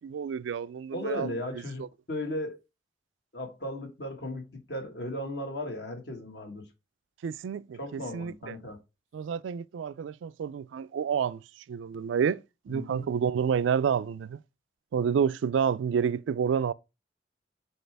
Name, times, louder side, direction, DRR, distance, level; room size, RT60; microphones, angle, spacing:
voice 1, 0.0-1.3 7.2-8.5 9.1-11.4 11.7-14.4 14.9-16.7, right 7 dB, 85° right, 0.3 m, -29 dB
voice 2, 0.9-2.6 3.3-6.7 7.8-8.8 12.7-13.1, left 1 dB, 60° left, 1.6 m, -36 dB
6.4 x 4.7 x 3.4 m
head